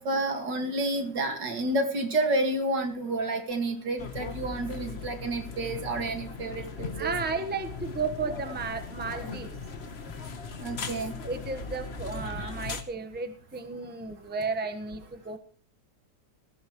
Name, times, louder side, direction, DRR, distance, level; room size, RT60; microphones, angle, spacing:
voice 1, 0.0-7.1 10.6-11.1, right 2 dB, 75° right, 4 dB, 2.8 m, -30 dB
sound 1, 4.0-12.8, left 4 dB, 40° left, 1.3 m, -39 dB
voice 2, 7.0-9.8 10.2-10.3 11.2-15.4, right 4 dB, 5° right, 7 dB, 1.0 m, -33 dB
19.0 x 14.5 x 3.1 m, 0.43 s
omnidirectional pair, 1.9 m